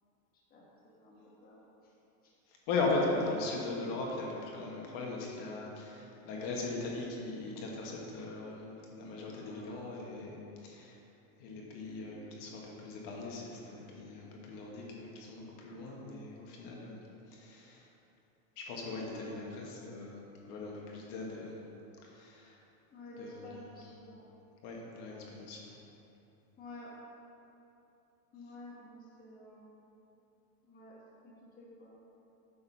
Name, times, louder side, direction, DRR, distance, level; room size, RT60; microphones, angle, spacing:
voice 1, 0.5-1.9 9.5-9.8 19.1-19.4 22.9-24.3 26.6-26.9 28.3-29.9 30.6-31.0 31.2-32.0, left 1 dB, 20° left, -6 dB, 1.2 m, -51 dB
voice 2, 2.7-11.0 11.4-17.0 17.3-17.9 18.6-21.5 22.0-22.6 23.2-23.4 24.6-25.8, left 3 dB, 50° left, -2 dB, 1.5 m, -38 dB
8.3 x 4.3 x 5.7 m, 2.8 s
supercardioid pair, 145°, 42 cm